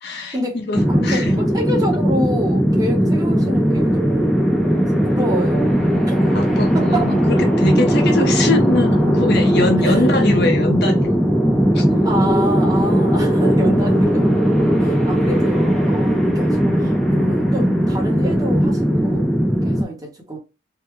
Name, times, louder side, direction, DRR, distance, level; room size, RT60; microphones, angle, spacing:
voice 1, 0.0-1.3 6.3-11.2 11.7-11.8, left 2 dB, 55° left, 0.7 m, -22 dB
sound 1, 0.7-19.8, equal, ahead, 0.5 m, -17 dB
voice 2, 0.9-4.4 5.1-5.8 6.0-7.2 9.8-10.1 12.0-14.3 14.8-20.4, equal, 20° right, 1.0 m, -28 dB
3.6 x 2.1 x 3.1 m
head